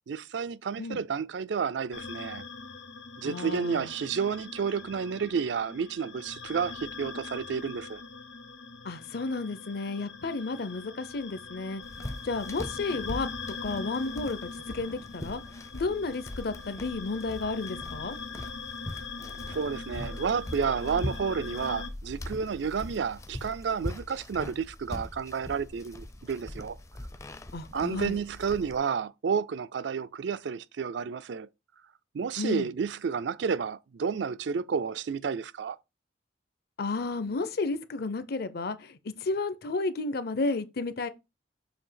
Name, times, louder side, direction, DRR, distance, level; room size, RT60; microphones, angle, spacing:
voice 1, 0.1-2.4 3.2-8.0 19.5-26.8 27.7-31.5 32.1-35.8, right 6 dB, 70° right, 0.4 m, -31 dB
sound 1, 1.9-21.9, left 4 dB, 90° left, 1.1 m, -42 dB
voice 2, 3.2-3.9 8.8-11.8 12.2-13.3 13.6-15.4 15.7-18.2 27.5-28.2 32.4-32.7 36.8-41.1, left 3 dB, 55° left, 0.7 m, -32 dB
sound 2, 11.8-28.8, left 1 dB, 15° left, 0.5 m, -41 dB
7.1 x 2.8 x 5.7 m
head